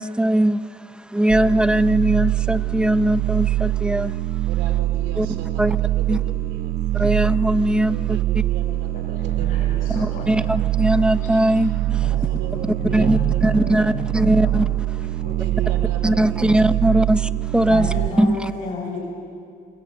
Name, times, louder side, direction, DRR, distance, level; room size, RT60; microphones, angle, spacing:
voice 1, 0.0-4.5 5.2-5.3 5.6-5.8 6.1-6.2 6.9-8.4 9.9-12.0 12.9-14.7 15.0-15.1 16.0-17.9 18.2-18.5, right 1 dB, 5° right, 13 dB, 0.7 m, -20 dB
sound 1, 1.3-18.1, right 14 dB, 60° right, 0.9 m, -23 dB
voice 2, 4.5-7.1 7.9-10.2 10.6-10.7 12.1-13.4 13.7-13.9 15.2-17.1, right 7 dB, 90° right, 7 dB, 3.4 m, -38 dB
voice 3, 9.1-10.6 11.2-11.3 12.0-13.8 14.2-14.5 15.0-15.7 17.7-19.0, left 3 dB, 50° left, -5 dB, 7.4 m, -33 dB
27.0 x 20.5 x 9.0 m, 2.4 s
cardioid pair, 110°, 17 cm